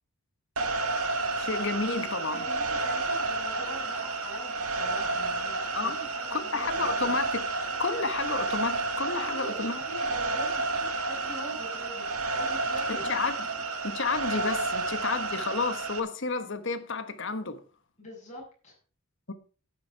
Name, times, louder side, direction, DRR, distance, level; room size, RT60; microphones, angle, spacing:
sound 1, 0.6-16.0, right 3 dB, 75° right, 1.7 m, -31 dB
voice 1, 1.4-2.5 5.7-6.0 6.3-7.4 7.8-9.8 13.0-13.4 13.8-17.6 19.3-19.4, left 4 dB, 55° left, 1.2 m, -31 dB
voice 2, 2.2-7.2 8.9-12.0 12.3-13.1 18.0-18.7, left 1 dB, 30° left, 7.1 m, -43 dB
12.0 x 9.6 x 4.6 m
head